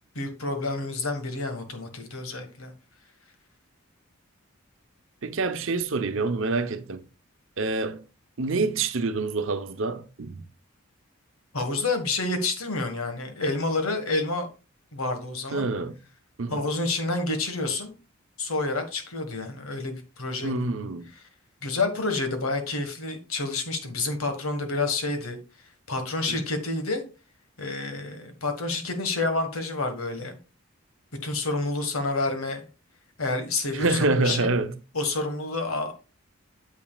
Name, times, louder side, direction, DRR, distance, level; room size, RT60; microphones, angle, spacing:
voice 1, 0.1-2.7 11.5-14.5 14.9-15.7 16.5-17.9 18.4-20.5 21.6-25.4 25.9-27.0 27.6-30.4 31.2-32.6 33.2-34.5 34.9-35.9, left 3 dB, 85° left, 1.6 m, -29 dB
voice 2, 5.2-7.0 7.6-8.0 8.4-10.4 15.5-16.0 16.4-16.6 20.4-21.1 26.3-26.4 33.7-34.7, right 3 dB, 65° right, 0.8 m, -26 dB
9.0 x 7.6 x 2.4 m
head